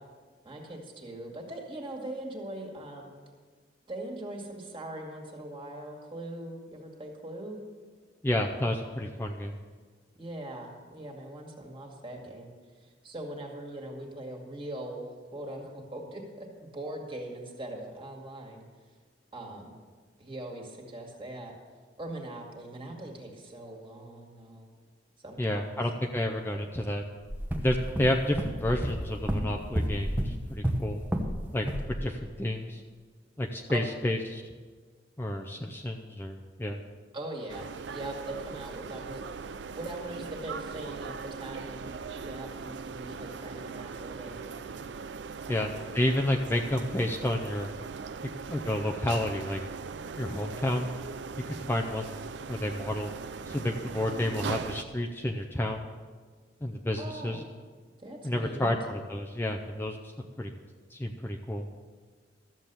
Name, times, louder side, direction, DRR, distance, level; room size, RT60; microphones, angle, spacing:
voice 1, 0.4-3.1 3.9-7.6 10.2-12.5 12.8-16.5 16.7-18.6 19.3-19.7 20.2-21.5 22.0-24.7 25.2-25.8 33.7-33.9 37.1-39.2 39.7-41.9 42.2-44.6 45.5-45.9 57.0-57.6 58.0-58.7, right 1 dB, 30° right, 1 dB, 2.1 m, -41 dB
voice 2, 8.2-9.6 25.4-27.0 27.5-31.0 31.5-32.8 33.4-34.4 35.2-36.8 45.5-47.7 48.5-49.6 50.2-50.9 51.5-52.2 52.5-53.1 53.5-55.9 56.6-57.4 58.2-60.5 60.9-61.7, left 1 dB, 10° left, 2 dB, 0.6 m, -30 dB
sound 1, 27.3-31.4 31.7-32.0, equal, 10° right, 1.0 m, -31 dB
sound 2, 37.5-54.8, right 5 dB, 70° right, 0.5 m, -40 dB
13.5 x 7.5 x 6.9 m, 1.5 s
head